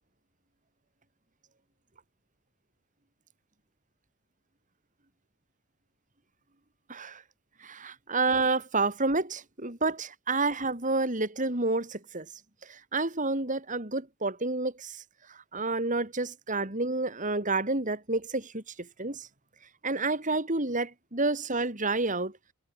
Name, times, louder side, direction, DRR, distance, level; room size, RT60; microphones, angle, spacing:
voice 1, 6.9-7.2 7.6-12.3 12.7-15.0 15.3-19.3 19.8-22.3, right 3 dB, 40° right, 4.0 m, -29 dB
head